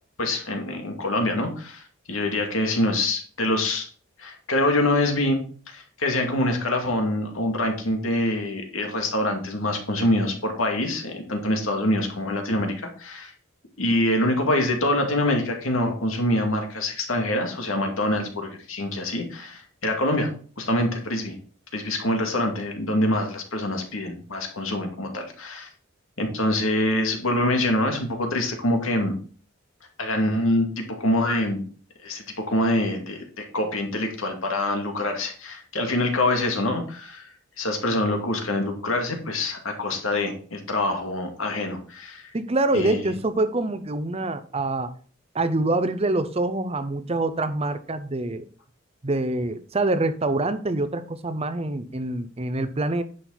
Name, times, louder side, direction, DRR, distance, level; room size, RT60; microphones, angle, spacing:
voice 1, 0.2-3.9 4.2-13.3 13.8-20.3 20.6-21.3 21.7-25.7 26.2-29.1 30.0-31.6 32.0-37.3 37.6-42.3 42.7-43.1, left 1 dB, 80° left, 3 dB, 2.3 m, -25 dB
voice 2, 42.3-44.9 45.3-48.5 49.0-53.0, right 2 dB, 30° right, 11 dB, 0.7 m, -25 dB
10.0 x 6.4 x 4.1 m, 0.42 s
head